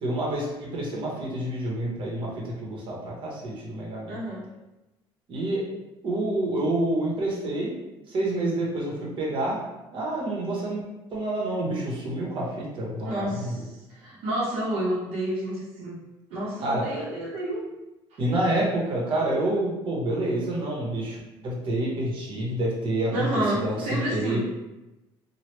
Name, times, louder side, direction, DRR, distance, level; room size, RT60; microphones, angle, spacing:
voice 1, 0.0-4.1 5.3-5.6 6.0-7.7 8.1-9.6 9.9-10.8 11.1-13.6 16.6-16.9 18.2-21.2 21.4-23.3 23.5-24.4, right 1 dB, 55° right, -3 dB, 1.0 m, -28 dB
voice 2, 4.1-4.4 13.0-16.0 16.3-17.6 18.1-18.2 23.1-24.4, right 1 dB, 85° right, -5 dB, 0.9 m, -30 dB
3.1 x 2.3 x 3.2 m, 0.99 s
cardioid pair, 110°, 10 cm